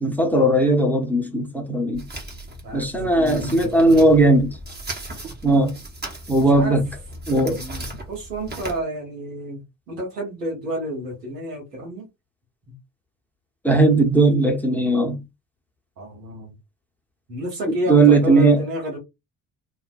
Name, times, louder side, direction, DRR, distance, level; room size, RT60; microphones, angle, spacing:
voice 1, 0.0-2.0 2.7-4.5 5.4-5.7 6.3-6.8 7.3-7.6 13.6-15.2 17.9-18.6, right 2 dB, 5° left, 0.8 m, -17 dB
sound 1, 1.9-8.8, right 2 dB, 20° right, 0.9 m, -37 dB
voice 2, 2.6-4.2 6.3-6.8 7.4-12.1 12.7-12.8 16.0-16.6 17.3-19.0, equal, 85° right, 1.1 m, -31 dB
2.4 x 2.2 x 2.4 m
figure-of-eight pair, 45°, 48 cm